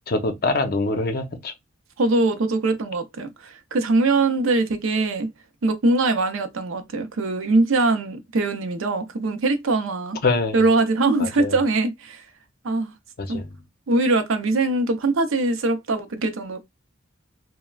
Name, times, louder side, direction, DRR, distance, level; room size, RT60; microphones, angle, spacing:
voice 1, 0.1-1.5 10.2-10.6 11.2-11.6 13.2-13.5, left 3 dB, 50° left, 0.6 m, -24 dB
voice 2, 2.0-5.3 5.6-10.2 10.5-12.2 12.6-12.9 13.3-13.4 13.9-16.6, right 2 dB, 90° right, 0.5 m, -22 dB
3.1 x 2.1 x 2.3 m
head